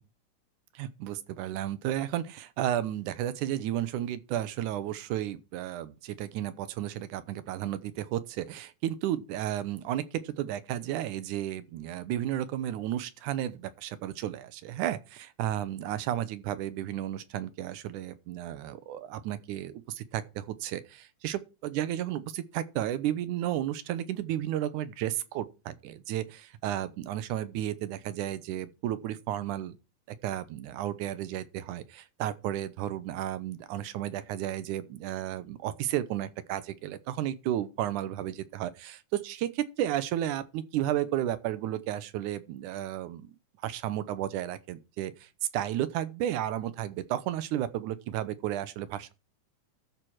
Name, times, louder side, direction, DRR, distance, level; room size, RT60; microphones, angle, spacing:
voice 1, 0.8-29.8 30.2-43.3 43.6-49.1, right 12 dB, 80° right, 2.2 m, -33 dB
13.0 x 4.5 x 6.2 m
omnidirectional pair, 3.6 m